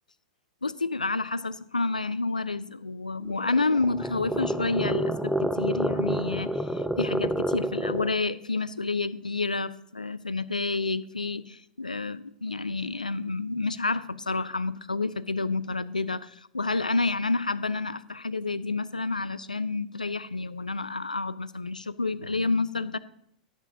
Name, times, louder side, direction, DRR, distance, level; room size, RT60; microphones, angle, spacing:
voice 1, 0.6-23.0, left 3 dB, 85° left, 16 dB, 0.4 m, -29 dB
sound 1, 3.2-8.2, right 1 dB, ahead, 0.6 m, -29 dB
11.0 x 8.4 x 3.6 m, 0.70 s
figure-of-eight pair, 95°, 4 cm